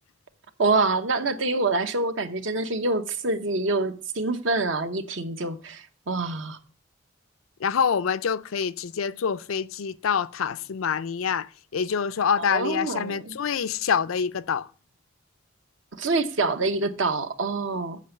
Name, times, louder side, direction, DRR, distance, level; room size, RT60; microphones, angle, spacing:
voice 1, 0.6-6.6 12.4-13.3 16.0-18.0, right 3 dB, 65° right, 0.9 m, -26 dB
voice 2, 7.6-14.7, left 6 dB, 85° left, 0.5 m, -26 dB
8.4 x 5.3 x 6.8 m
head